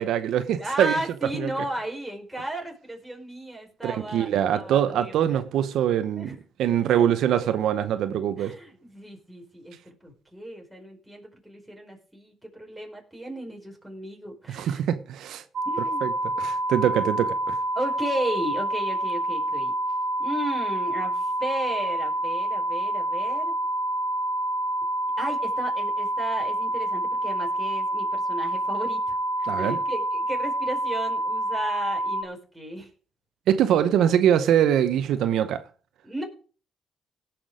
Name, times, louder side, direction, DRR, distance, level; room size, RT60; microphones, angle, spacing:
voice 1, 0.0-1.0 1.3-1.5 3.8-6.3 6.6-8.5 14.5-15.4 16.0-16.1 16.4-17.6 29.5-29.8 33.5-35.6, right 10 dB, 80° right, 0.8 m, -23 dB
voice 2, 0.6-5.4 6.2-6.3 6.9-7.1 8.4-14.8 15.6-16.1 17.7-19.7 20.2-23.5 25.2-29.2 29.6-32.9 36.0-36.2, right 1 dB, 5° right, 5.0 m, -35 dB
sound 1, 15.6-32.2, right 1 dB, 60° right, 1.4 m, -27 dB
17.5 x 6.1 x 5.0 m
cardioid pair, 90°, 0 cm